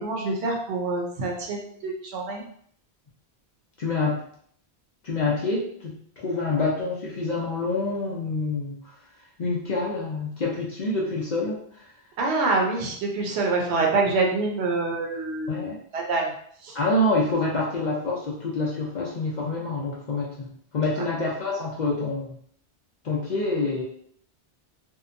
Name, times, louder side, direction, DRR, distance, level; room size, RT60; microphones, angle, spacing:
voice 1, 0.0-2.4 12.2-16.3 16.6-16.7 21.0-21.1, right 3 dB, 75° right, 0 dB, 0.9 m, -26 dB
voice 2, 3.8-4.2 5.0-8.8 9.4-11.6 15.5-15.8 16.7-22.3 23.0-23.8, left 2 dB, 55° left, -4 dB, 0.6 m, -27 dB
2.7 x 2.2 x 2.5 m, 0.63 s
omnidirectional pair, 1.1 m